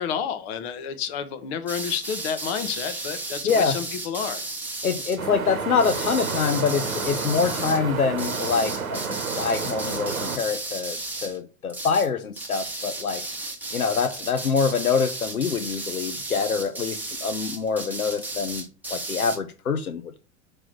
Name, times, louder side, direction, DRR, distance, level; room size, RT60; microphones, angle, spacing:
voice 1, 0.0-4.4, left 8 dB, 50° left, 1.1 m, -30 dB
sound 1, 1.7-5.2 5.8-7.8 8.2-11.4 11.7-12.1 12.4-19.4, right 2 dB, 5° right, 1.2 m, -34 dB
voice 2, 3.4-3.8 4.8-13.2 13.7-18.6 18.9-20.2, left 5 dB, 85° left, 0.7 m, -25 dB
sound 2, 5.2-10.4, right 6 dB, 75° right, 1.0 m, -31 dB
6.0 x 3.2 x 5.8 m
figure-of-eight pair, 85°, 42 cm